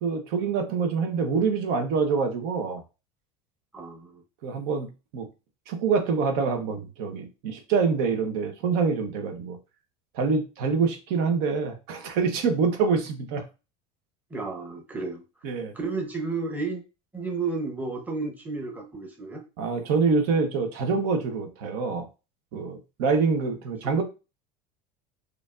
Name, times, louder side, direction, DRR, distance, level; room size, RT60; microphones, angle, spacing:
voice 1, 0.0-2.8 4.4-4.9 5.1-5.3 5.7-9.6 10.1-13.4 15.4-15.7 19.6-22.0 22.5-24.0, right 5 dB, 70° right, 5 dB, 1.0 m, -25 dB
voice 2, 3.7-4.2 14.3-15.2 15.7-16.8 17.1-19.4 23.8-24.0, right 4 dB, 10° right, 1 dB, 0.9 m, -32 dB
4.9 x 2.6 x 2.5 m, 0.29 s
supercardioid pair, 135°, 20 cm